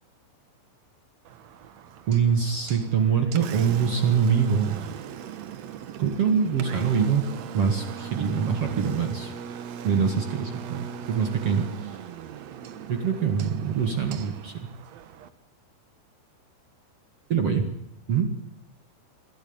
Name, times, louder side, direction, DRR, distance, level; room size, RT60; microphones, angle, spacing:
Engine, 1.2-15.3, right 9 dB, 90° right, 1.5 m, -39 dB
voice 1, 2.1-4.8 6.0-7.3 7.5-9.3 9.8-11.9 12.9-14.7 17.3-17.7 18.1-18.3, right 7 dB, 50° right, 5 dB, 2.0 m, -24 dB
23.5 x 15.0 x 8.8 m, 0.86 s
omnidirectional pair, 5.1 m